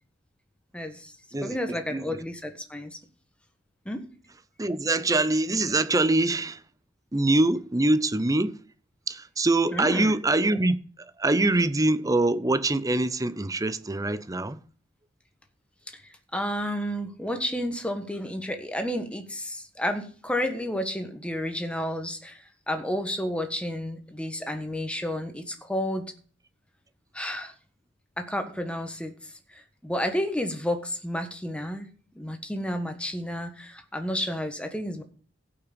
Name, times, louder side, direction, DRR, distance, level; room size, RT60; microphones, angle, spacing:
voice 1, 0.7-1.1 1.4-3.0 3.8-4.0 9.7-10.1 15.9-16.0 16.3-26.1 27.1-27.5 28.2-29.1 29.8-31.9 32.1-35.0, left 1 dB, 5° left, 1.4 m, -31 dB
voice 2, 1.3-2.2 4.6-6.6 7.1-8.5 9.1-14.6, right 2 dB, 20° right, 0.6 m, -24 dB
16.0 x 5.9 x 5.2 m
head